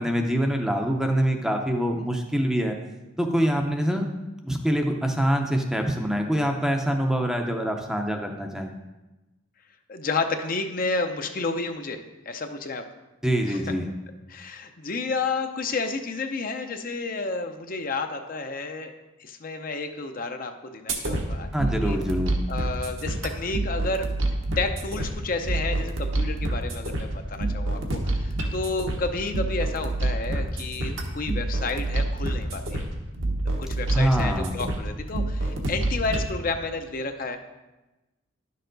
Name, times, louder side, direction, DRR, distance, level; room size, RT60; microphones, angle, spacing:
voice 1, 0.0-2.8 3.2-4.1 4.4-8.7 13.2-13.9 21.5-22.4 33.9-34.6, equal, 5° right, 3 dB, 0.6 m, -25 dB
voice 2, 9.9-12.8 13.5-13.6 14.3-18.9 19.2-22.0 22.5-24.1 24.6-32.9 33.6-37.4, left 3 dB, 40° left, 6 dB, 0.6 m, -31 dB
sound 1, 20.9-36.3, right 1 dB, 70° right, 1.1 m, -28 dB
10.5 x 6.6 x 3.9 m, 1.1 s
head